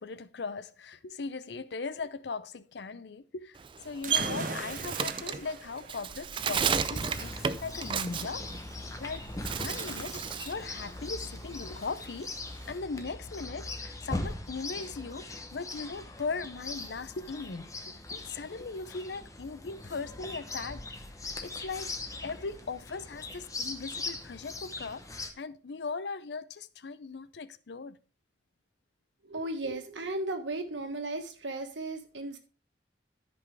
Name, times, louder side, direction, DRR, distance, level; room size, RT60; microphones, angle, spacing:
voice 1, 0.0-8.5 9.0-9.3 9.6-12.4 12.7-20.9 21.4-22.0 22.2-28.0, left 4 dB, 65° left, 0.6 m, -39 dB
Bird, 3.6-9.0 9.4-10.6 11.0-12.7, right 6 dB, 25° right, 0.3 m, -33 dB
sound 1, 4.0-11.5, right 3 dB, 45° right, 1.1 m, -42 dB
Chirp tweet, 6.4-25.3, left 2 dB, 20° left, 0.9 m, -41 dB
voice 2, 29.2-32.4, right 2 dB, 85° right, 1.5 m, -35 dB
13.5 x 5.3 x 3.4 m
head